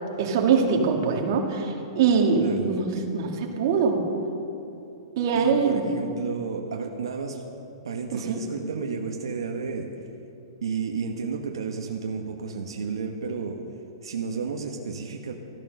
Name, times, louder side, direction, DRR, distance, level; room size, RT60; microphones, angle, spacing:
voice 1, 0.2-4.0 5.2-5.8 8.1-8.4, right 5 dB, 55° right, 2 dB, 2.0 m, -23 dB
voice 2, 2.4-2.7 5.3-7.4 7.8-9.9 10.6-13.6 14.0-15.3, right 5 dB, 90° right, 2 dB, 1.1 m, -31 dB
14.0 x 11.0 x 6.4 m, 2.8 s
hypercardioid pair, 145°, 3 cm